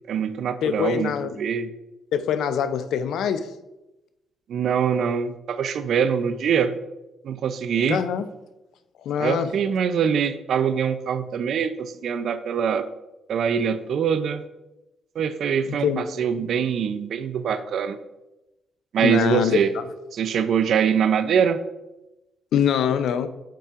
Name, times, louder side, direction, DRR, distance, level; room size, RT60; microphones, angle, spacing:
voice 1, 0.1-1.1 1.4-1.7 4.5-6.7 7.2-8.0 9.2-12.9 13.3-14.4 15.2-18.0 18.9-19.7 20.1-21.6, right 7 dB, 65° right, 11 dB, 0.4 m, -23 dB
voice 2, 0.6-1.4 2.1-3.5 7.9-8.3 9.0-9.5 15.7-16.0 19.0-19.8 22.5-23.3, left 8 dB, 75° left, 11 dB, 0.5 m, -23 dB
8.6 x 5.6 x 2.5 m, 0.98 s
cardioid pair, 90°, 0 cm